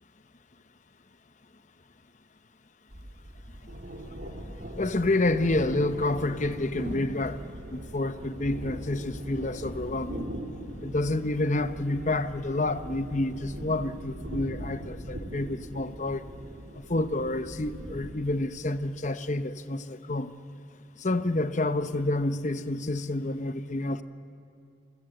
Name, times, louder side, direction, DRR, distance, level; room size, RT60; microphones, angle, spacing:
sound 1, 2.9-18.1, right 1 dB, 55° right, 2.8 m, -40 dB
voice 1, 4.8-7.4 7.7-10.3 10.8-16.2 16.8-20.3 21.0-24.0, left 2 dB, 40° left, 11 dB, 0.9 m, -29 dB
28.0 x 24.5 x 7.8 m, 2.5 s
head